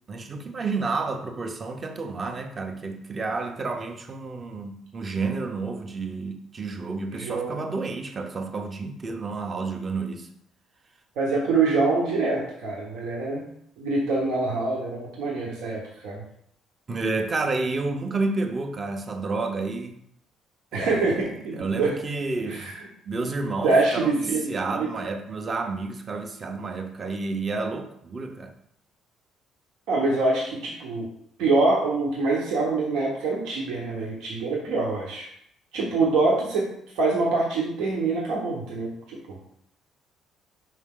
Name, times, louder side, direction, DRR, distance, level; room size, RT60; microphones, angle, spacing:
voice 1, 0.1-10.3 16.9-20.0 20.7-22.7 23.0-28.5, right 3 dB, 30° right, 6 dB, 0.7 m, -30 dB
voice 2, 7.1-7.6 11.2-13.4 13.8-16.2 20.7-21.9 22.5-22.7 23.6-24.4 24.7-24.9 29.9-31.1 31.4-35.3 35.7-36.7 36.9-39.4, right 3 dB, 85° right, -3 dB, 1.2 m, -25 dB
5.4 x 4.6 x 3.7 m, 0.72 s
cardioid pair, 130°, 0 cm